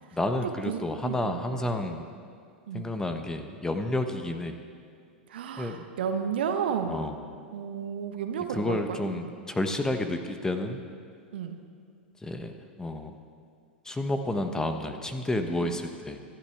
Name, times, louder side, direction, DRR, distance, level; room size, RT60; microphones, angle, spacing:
voice 1, 0.1-2.1 2.7-4.6 5.6-5.8 6.9-7.2 8.5-10.8 12.2-13.1 13.8-16.2, left 1 dB, 10° left, 7 dB, 1.1 m, -30 dB
voice 2, 0.6-1.4 2.7-2.9 5.3-7.0 7.5-9.0 11.3-11.6 15.6-15.8, right 7 dB, 65° right, 6 dB, 1.2 m, -32 dB
25.5 x 11.0 x 3.6 m, 2.2 s
figure-of-eight pair, 90°, 6 cm